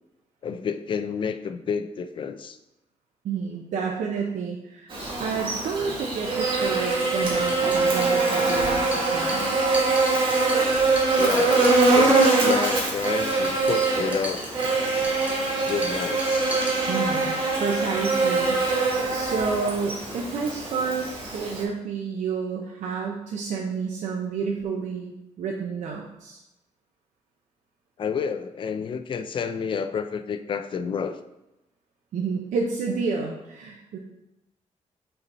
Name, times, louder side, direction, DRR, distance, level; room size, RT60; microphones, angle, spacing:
voice 1, 0.4-2.6 11.1-14.5 15.7-16.6 28.0-31.2, left 6 dB, 45° left, 9 dB, 0.4 m, -30 dB
voice 2, 3.2-9.8 16.9-18.6 19.1-26.4 32.1-34.0, right 5 dB, 85° right, 0 dB, 0.7 m, -30 dB
Buzz, 4.9-21.6, right 3 dB, 45° right, 1.4 m, -23 dB
sound 1, 7.5-17.3, right 1 dB, 15° right, 0.9 m, -39 dB
5.6 x 4.1 x 4.1 m, 0.91 s
wide cardioid pair, 165°, 12 cm